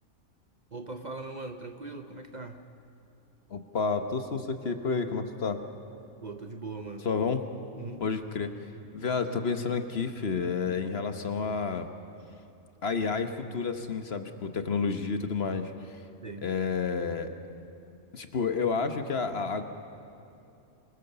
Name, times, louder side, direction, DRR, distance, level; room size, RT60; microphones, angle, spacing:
voice 1, 0.7-2.6 6.2-7.1 7.8-8.0 16.2-16.5, right 3 dB, 35° right, 6 dB, 0.9 m, -40 dB
voice 2, 3.5-5.6 7.0-7.4 8.0-8.5 8.9-11.9 12.8-16.0 16.4-17.3 18.1-19.6, left 5 dB, 50° left, 8 dB, 1.3 m, -30 dB
25.0 x 20.5 x 6.8 m, 2.8 s
omnidirectional pair, 1.4 m